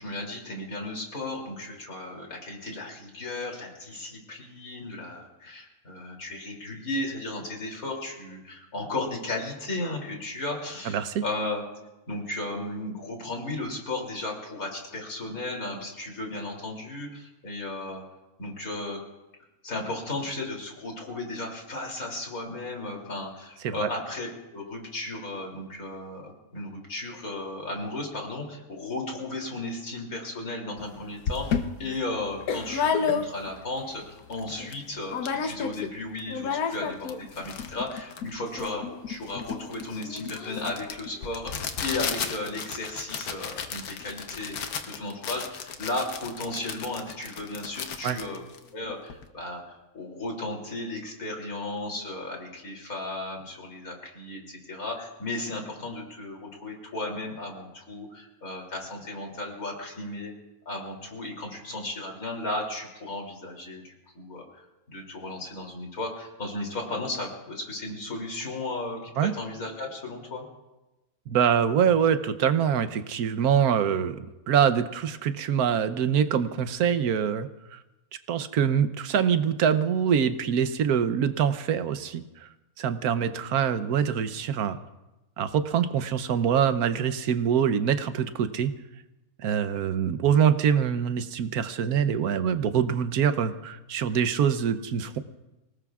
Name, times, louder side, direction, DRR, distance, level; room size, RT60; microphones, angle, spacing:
voice 1, 0.0-11.6 12.1-18.0 18.4-19.0 19.6-48.4 48.7-60.3 60.6-64.6 64.9-70.4, left 2 dB, 70° left, 0 dB, 3.4 m, -35 dB
voice 2, 10.9-11.2 23.6-23.9 48.0-48.2 69.2-69.3 71.3-74.2 74.5-77.8 78.3-82.2 82.8-84.8 85.4-88.7 89.4-95.2, right 8 dB, 90° right, 11 dB, 1.3 m, -24 dB
sound 1, 30.8-30.9 31.3-33.6 34.1-34.2 34.3-34.8 35.1-35.9 36.2-49.3, left 6 dB, 85° left, 1.4 m, -32 dB
26.0 x 18.5 x 2.4 m, 1.0 s
omnidirectional pair, 1.5 m